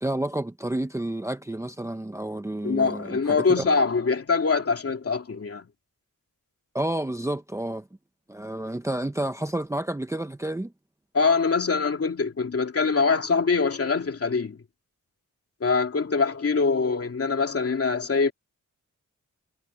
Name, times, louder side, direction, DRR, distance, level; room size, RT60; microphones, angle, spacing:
voice 1, 0.0-3.6 6.7-7.9 8.3-10.7, right 1 dB, 10° right, 0.7 m, -30 dB
voice 2, 2.6-5.7 11.1-14.6 15.6-18.3, left 4 dB, 45° left, 2.7 m, -24 dB
wide cardioid pair, 145°, 31 cm